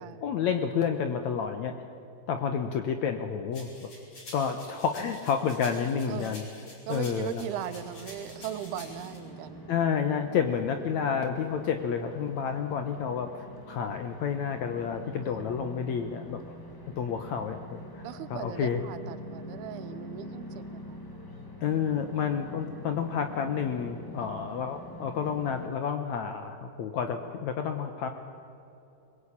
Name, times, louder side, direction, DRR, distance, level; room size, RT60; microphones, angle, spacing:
voice 1, 0.2-1.8 2.3-3.9 4.3-6.4 6.9-7.4 9.7-16.4 17.0-18.0 18.3-18.8 21.6-28.1, left 7 dB, 70° left, 7 dB, 1.7 m, -30 dB
sound 1, 3.5-9.2, left 2 dB, 40° left, 6.0 m, -48 dB
voice 2, 6.9-9.7 15.1-15.4 18.0-21.0 24.2-24.7 27.1-27.4, right 10 dB, 80° right, 12 dB, 3.0 m, -39 dB
sound 2, 7.5-25.7, left 1 dB, 20° left, 0.5 m, -45 dB
22.5 x 21.5 x 8.7 m, 2.8 s
omnidirectional pair, 4.5 m